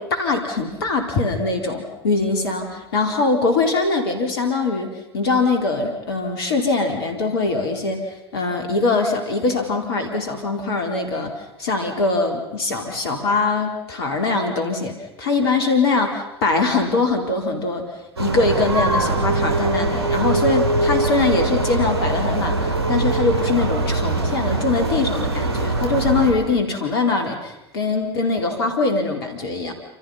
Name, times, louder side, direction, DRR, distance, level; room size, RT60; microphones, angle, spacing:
voice 1, 0.0-8.0 8.3-11.3 11.6-17.9 18.2-29.7, left 3 dB, 70° left, 4 dB, 4.2 m, -22 dB
sound 1, 18.2-26.3, right 2 dB, 75° right, 6.2 m, -22 dB
28.5 x 28.0 x 5.7 m, 0.93 s
figure-of-eight pair, 80°, 13 cm